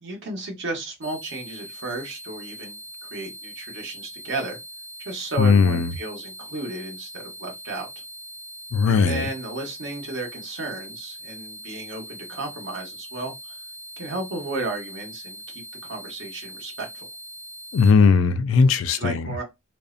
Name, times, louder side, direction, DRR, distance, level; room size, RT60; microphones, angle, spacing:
voice 1, 0.0-4.6 5.0-7.9 8.9-13.6 14.0-17.1 18.9-19.4, right 2 dB, 65° right, 0.9 m, -33 dB
sound 1, 1.0-17.9, equal, 15° right, 0.4 m, -41 dB
voice 2, 5.4-5.9 8.7-9.3 17.7-19.3, left 5 dB, 75° left, 0.3 m, -18 dB
2.5 x 2.0 x 2.4 m
head